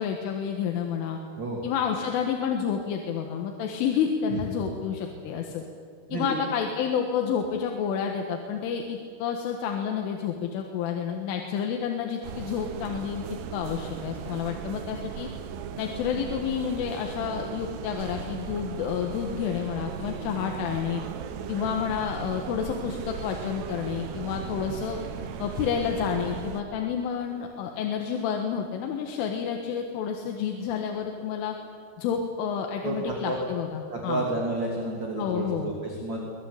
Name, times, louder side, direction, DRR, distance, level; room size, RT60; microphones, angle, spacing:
voice 1, 0.0-1.2 1.6-5.6 6.1-13.3 13.5-15.3 15.8-21.0 21.5-25.0 25.4-31.6 32.0-34.3 35.2-35.7, left 7 dB, 85° left, 3 dB, 4.1 m, -29 dB
sound 1, 12.2-26.6, right 8 dB, 70° right, 2.9 m, -37 dB
voice 2, 32.8-33.4 33.9-36.2, right 2 dB, 30° right, -1 dB, 2.5 m, -30 dB
23.0 x 20.5 x 8.6 m, 2.2 s
omnidirectional pair, 5.5 m